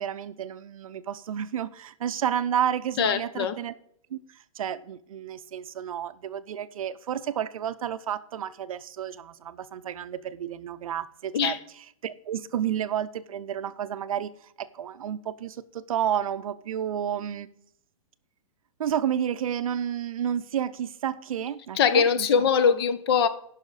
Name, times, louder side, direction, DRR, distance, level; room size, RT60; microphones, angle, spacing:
voice 1, 0.0-3.7 4.1-11.6 12.0-17.5 18.8-22.5, right 9 dB, 70° right, 14 dB, 0.6 m, -31 dB
voice 2, 3.0-3.6 11.3-11.6 21.8-23.3, left 7 dB, 45° left, 13 dB, 0.8 m, -22 dB
15.5 x 5.7 x 4.1 m, 0.70 s
hypercardioid pair, 160°, 18 cm